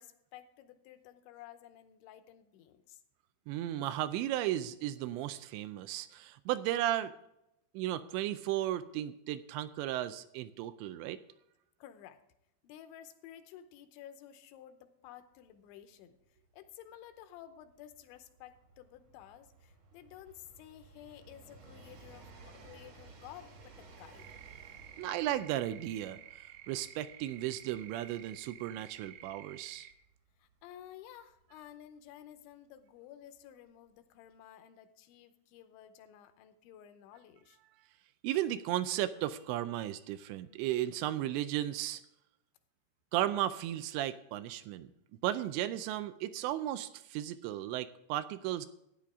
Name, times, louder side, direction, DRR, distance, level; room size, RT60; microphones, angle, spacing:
voice 1, 0.0-3.0 11.8-12.2 12.6-24.3 30.4-37.6, left 11 dB, 85° left, 9 dB, 3.1 m, -53 dB
voice 2, 3.5-7.1 7.7-11.2 25.0-29.9 38.2-42.0 43.1-44.9 45.2-48.7, right 13 dB, 85° right, 12 dB, 2.7 m, -35 dB
Train, 15.4-15.5 15.7-32.3 33.3-33.4, right 3 dB, 50° right, 2.0 m, -58 dB
sound 1, 24.2-29.9, right 11 dB, 70° right, 2.6 m, -52 dB
13.5 x 9.9 x 3.6 m, 0.83 s
omnidirectional pair, 5.3 m